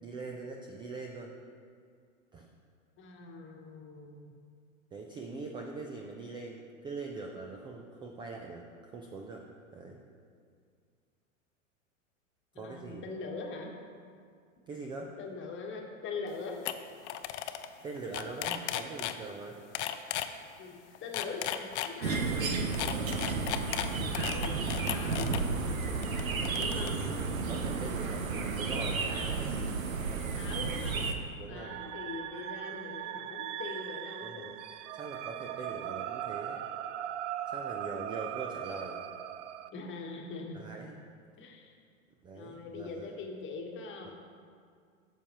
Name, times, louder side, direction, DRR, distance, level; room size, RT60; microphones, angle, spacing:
voice 1, 0.0-1.3 2.3-2.5 4.9-9.5 9.7-10.0 12.6-13.1 14.7-15.1 17.8-19.6 20.9-21.0 25.2-25.5 26.2-26.6 27.5-29.4 31.4-31.8 34.2-34.5 34.9-36.6 37.5-39.0 40.5-41.0 42.2-43.0 44.1-44.2, right 3 dB, 15° right, 1 dB, 0.3 m, -42 dB
voice 2, 3.0-4.3 12.5-13.7 15.2-16.6 20.6-23.8 24.1-24.5 24.9-25.3 26.6-27.0 30.3-31.1 31.5-34.5 39.7-40.7 41.4-41.8 42.3-44.1, left 4 dB, 30° left, 1 dB, 1.3 m, -42 dB
sound 1, 16.3-16.4 16.7-16.8 17.0-17.7 18.0-19.2 19.8-20.3 21.0-22.2 22.7-25.4 26.0-26.9, left 12 dB, 60° left, 0.6 m, -35 dB
sound 2, 22.0-31.1, right 4 dB, 90° right, 0.9 m, -32 dB
sound 3, 31.6-39.7, right 11 dB, 65° right, 0.5 m, -39 dB
12.0 x 7.3 x 2.9 m, 2.2 s
hypercardioid pair, 105°, 40 cm